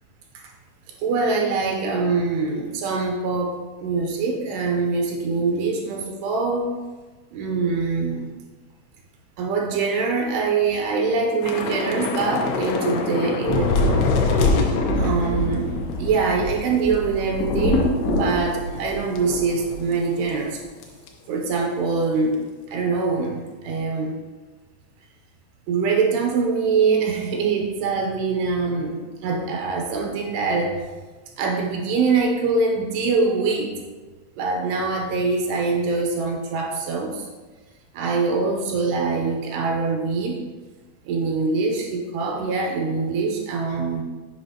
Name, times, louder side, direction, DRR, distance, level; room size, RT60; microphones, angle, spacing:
voice 1, 1.0-6.7 7.3-8.3 9.4-14.2 14.9-15.7 16.0-20.6 21.3-24.1 25.7-30.8 31.4-33.7 34.4-37.3 37.9-40.4 41.1-44.0, right 4 dB, 85° right, 1 dB, 2.6 m, -24 dB
Thunder / Rain, 11.4-20.0 20.3-20.5 20.8-21.1, left 3 dB, 90° left, 2.8 m, -24 dB
8.0 x 5.4 x 2.8 m, 1.3 s
omnidirectional pair, 5.0 m